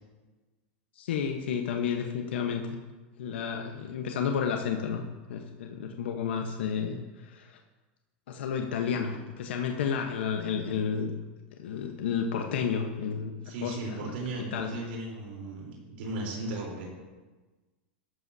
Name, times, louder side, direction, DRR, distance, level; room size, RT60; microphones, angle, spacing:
voice 1, 1.0-2.8 3.2-5.0 5.3-7.0 7.3-7.5 8.3-11.1 11.6-13.3 13.6-14.1 14.5-14.7, left 7 dB, 80° left, 3 dB, 1.1 m, -31 dB
voice 2, 13.4-16.9, right 2 dB, 75° right, -4 dB, 3.8 m, -36 dB
14.0 x 12.5 x 2.8 m, 1.2 s
supercardioid pair, 120°, 6 cm